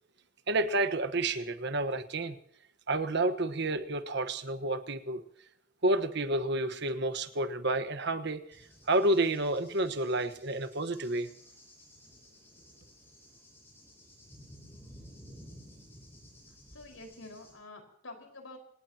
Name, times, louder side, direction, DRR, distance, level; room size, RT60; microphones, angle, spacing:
voice 1, 0.5-2.4 2.9-5.2 5.8-8.4 8.9-11.3, right 2 dB, 55° right, 11 dB, 1.3 m, -30 dB
Cricket / Thunder, 8.5-17.5, equal, 10° left, 7.7 m, -54 dB
voice 2, 16.7-18.6, left 2 dB, 70° left, 4 dB, 5.0 m, -48 dB
27.0 x 18.5 x 2.9 m, 0.68 s
head